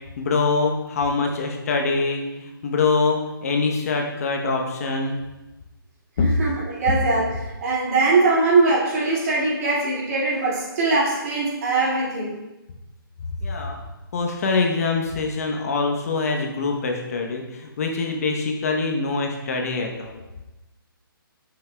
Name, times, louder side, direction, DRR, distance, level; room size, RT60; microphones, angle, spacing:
voice 1, 0.2-5.1 6.2-6.3 13.4-13.8 14.1-20.2, left 4 dB, 40° left, 2 dB, 0.8 m, -24 dB
voice 2, 6.2-12.4, right 3 dB, 40° right, -5 dB, 2.0 m, -21 dB
8.4 x 6.0 x 2.2 m, 1.0 s
hypercardioid pair, 155°, 12 cm